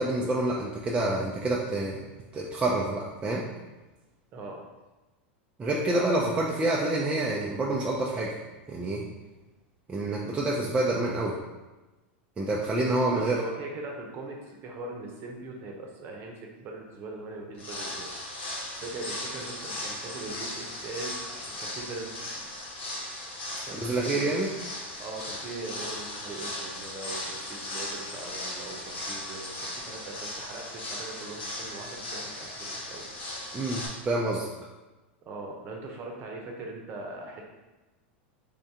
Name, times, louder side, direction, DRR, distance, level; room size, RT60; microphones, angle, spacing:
voice 1, 0.0-2.0 2.3-3.4 5.6-8.4 8.7-9.0 9.9-11.4 12.4-13.4 23.8-24.5 33.5-34.5, right 2 dB, 20° right, -4 dB, 0.5 m, -27 dB
voice 2, 13.1-22.2 23.6-24.5 25.0-33.4 35.3-37.5, right 2 dB, 40° right, 0 dB, 0.9 m, -40 dB
sound 1, 17.5-33.9, left 1 dB, 80° left, 1.3 m, -37 dB
3.7 x 2.7 x 3.6 m, 1.1 s
hypercardioid pair, 115°, 6 cm